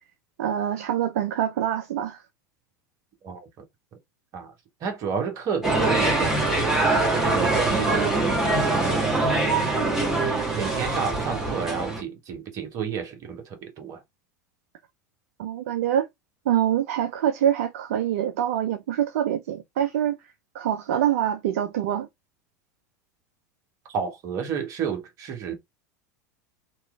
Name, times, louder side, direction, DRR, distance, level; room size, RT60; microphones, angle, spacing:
voice 1, 0.4-2.2 15.4-16.1 16.5-20.2 20.5-22.1, right 10 dB, 55° right, 0.3 m, -25 dB
voice 2, 4.8-6.8 7.2-7.9 8.7-9.6 10.5-14.0 23.9-25.5, right 6 dB, 40° right, 1.0 m, -31 dB
sound 1, 5.6-12.0, right 2 dB, 5° right, 1.3 m, -23 dB
2.9 x 2.3 x 2.3 m
figure-of-eight pair, 80°, 9 cm